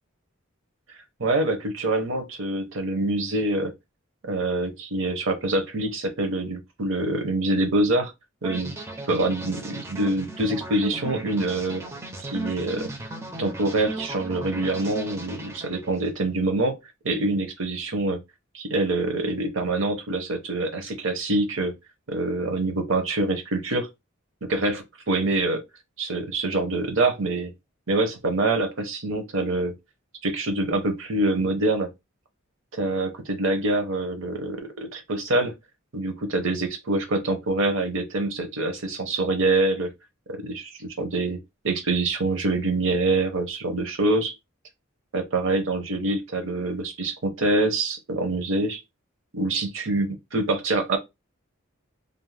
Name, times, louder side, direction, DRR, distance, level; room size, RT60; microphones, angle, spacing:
voice 1, 1.2-3.7 4.2-8.1 8.4-8.8 9.1-11.8 12.2-12.9 13.4-16.8 17.0-18.2 18.5-21.7 22.1-23.9 24.4-25.6 26.0-27.5 27.9-29.7 30.2-31.9 32.7-35.5 35.9-39.9 40.3-41.4 41.6-44.3 45.1-48.8 49.3-51.0, right 2 dB, 65° right, 0.7 m, -25 dB
sound 1, 8.4-16.1, right 2 dB, 15° right, 0.4 m, -37 dB
2.5 x 2.0 x 3.1 m
head